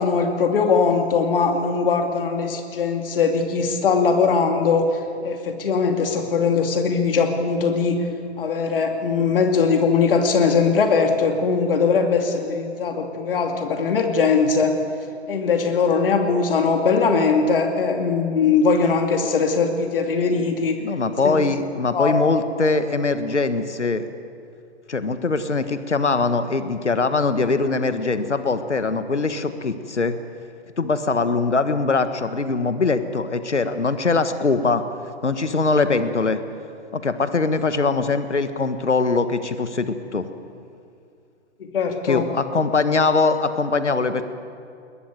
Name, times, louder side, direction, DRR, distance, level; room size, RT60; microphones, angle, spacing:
voice 1, 0.0-4.9 5.2-8.0 8.4-14.7 15.3-20.8 21.2-21.4 21.9-22.2 41.6-42.3, left 5 dB, 55° left, 4 dB, 2.5 m, -20 dB
voice 2, 20.8-24.1 24.9-30.2 30.8-34.8 35.2-36.4 36.9-40.3 42.1-44.2, left 3 dB, 85° left, 10 dB, 1.6 m, -22 dB
21.0 x 20.0 x 9.1 m, 2.4 s
figure-of-eight pair, 125°, 34 cm